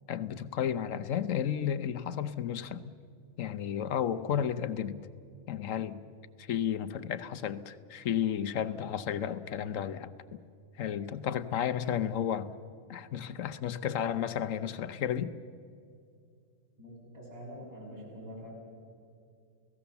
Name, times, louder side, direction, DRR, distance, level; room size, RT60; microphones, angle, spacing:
voice 1, 0.1-2.9 3.4-5.0 5.5-6.0 6.4-10.4 10.8-12.5 12.9-15.3, left 9 dB, 80° left, 1.2 m, -32 dB
voice 2, 16.8-18.5, equal, 30° right, 7.3 m, -45 dB
29.5 x 17.5 x 7.0 m
omnidirectional pair, 1.3 m